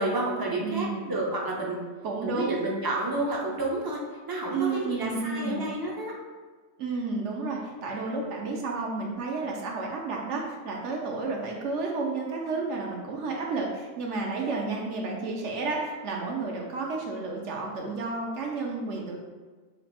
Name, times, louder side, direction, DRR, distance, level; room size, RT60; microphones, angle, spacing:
voice 1, 0.0-1.8 2.2-4.0 4.3-6.2, right 2 dB, 35° right, -2 dB, 0.3 m, -30 dB
voice 2, 0.6-1.1 2.0-2.7 4.5-5.7 6.8-19.2, right 3 dB, 75° right, 0 dB, 0.9 m, -31 dB
3.3 x 2.4 x 3.9 m, 1.4 s
omnidirectional pair, 1.3 m